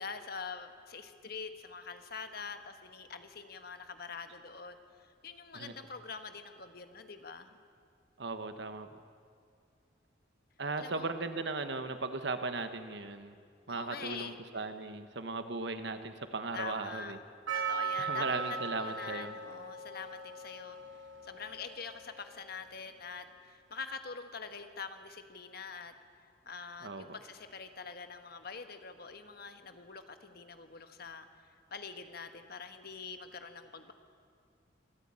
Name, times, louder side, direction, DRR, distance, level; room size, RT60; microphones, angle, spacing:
voice 1, 0.0-7.5 10.8-11.1 13.7-14.3 16.5-17.2 17.5-20.8 21.2-25.9 26.4-31.3 31.7-33.9, left 5 dB, 55° left, 8 dB, 1.4 m, -45 dB
voice 2, 8.2-8.9 10.6-13.4 13.7-17.2 18.0-19.3 26.8-27.1, right 3 dB, 60° right, 9 dB, 1.3 m, -37 dB
Percussion, 17.5-22.4, right 5 dB, 80° right, 3.0 m, -38 dB
24.0 x 14.0 x 8.9 m, 2.2 s
head